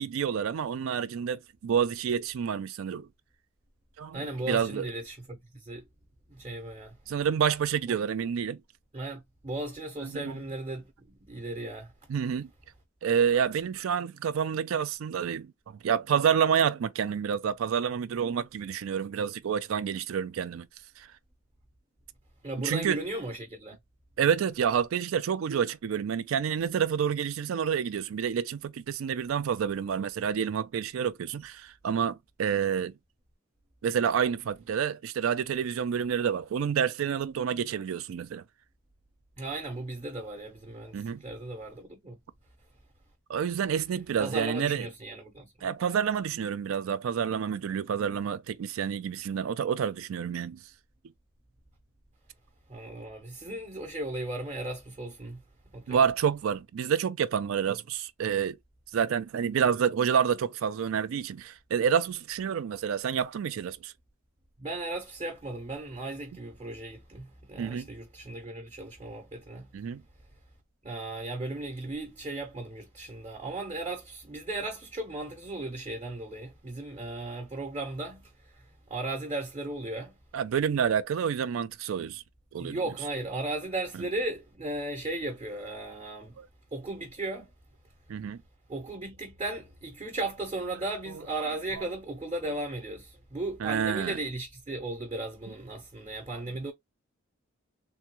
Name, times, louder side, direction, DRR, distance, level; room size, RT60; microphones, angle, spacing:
voice 1, 0.0-3.1 4.0-4.9 7.1-8.6 10.0-10.4 12.1-12.5 13.0-15.5 15.8-20.7 21.0-21.1 22.6-23.0 24.2-32.9 33.8-38.4 40.9-41.2 43.3-44.9 45.6-50.6 55.9-58.6 58.9-63.9 67.6-67.9 69.7-70.0 80.3-82.2 82.5-82.8 86.4-86.5 88.1-88.4 91.8-91.9 93.6-94.2, right 7 dB, 90° right, 0.4 m, -28 dB
voice 2, 4.1-5.8 6.3-7.0 8.9-11.9 22.4-23.8 39.4-42.2 44.2-45.5 52.7-55.4 55.7-56.0 64.6-69.7 70.8-80.2 82.6-86.4 86.7-87.5 88.7-96.7, right 2 dB, 30° right, 0.7 m, -36 dB
3.4 x 2.2 x 2.9 m
head